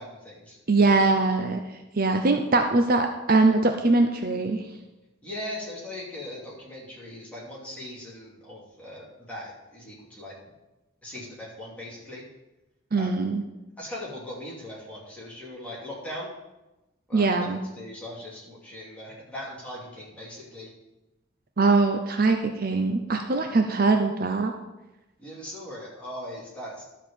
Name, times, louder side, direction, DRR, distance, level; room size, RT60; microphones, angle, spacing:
voice 1, 0.0-0.6 5.2-10.4 11.0-12.2 12.9-13.2 13.8-16.3 17.1-20.7 25.2-26.8, left 1 dB, 5° left, -6 dB, 2.8 m, -39 dB
voice 2, 0.7-1.6 2.0-4.6 12.9-13.4 17.1-17.6 21.6-24.5, right 3 dB, 45° right, 5 dB, 0.7 m, -22 dB
12.0 x 4.7 x 7.0 m, 1.0 s
head